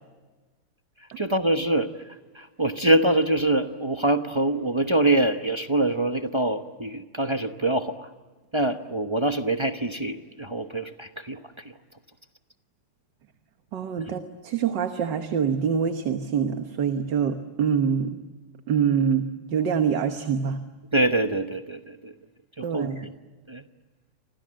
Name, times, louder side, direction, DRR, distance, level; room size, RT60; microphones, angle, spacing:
voice 1, 1.0-8.1 8.5-11.8 14.0-14.1 20.9-22.1 22.6-23.1 23.5-23.6, right 2 dB, 40° right, 6 dB, 0.4 m, -25 dB
voice 2, 13.7-18.2 18.7-20.6 22.6-23.1, right 7 dB, 60° right, 7 dB, 1.8 m, -25 dB
29.5 x 25.5 x 7.6 m, 1.3 s
omnidirectional pair, 2.4 m